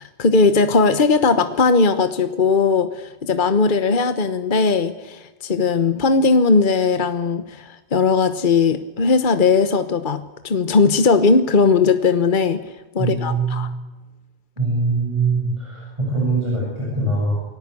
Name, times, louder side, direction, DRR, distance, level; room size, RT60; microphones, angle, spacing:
voice 1, 0.0-13.7, left 4 dB, 50° left, 10 dB, 1.3 m, -18 dB
voice 2, 13.0-13.7 14.6-17.4, right 3 dB, 25° right, -4 dB, 8.0 m, -22 dB
28.5 x 18.5 x 8.5 m, 1.1 s
omnidirectional pair, 1.1 m